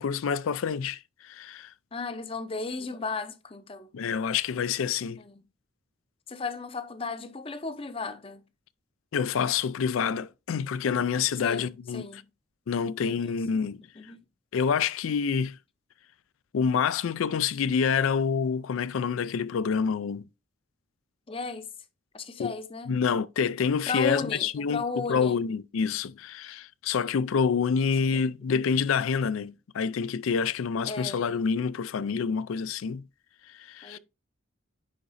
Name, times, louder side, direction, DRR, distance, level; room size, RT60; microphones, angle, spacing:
voice 1, 0.0-1.7 3.9-5.2 9.1-12.2 12.7-13.8 14.5-15.6 16.5-20.2 22.4-22.5 22.9-33.0 33.5-34.0, left 6 dB, 85° left, 0.4 m, -27 dB
voice 2, 1.9-3.9 5.2-5.4 6.3-8.4 11.4-11.7 11.9-12.3 12.8-13.7 14.0-14.2 21.3-21.7 22.1-22.9 23.9-25.4 28.1-28.2 30.9-31.2 33.8-34.0, left 4 dB, 25° left, 0.5 m, -35 dB
10.0 x 4.0 x 2.6 m
head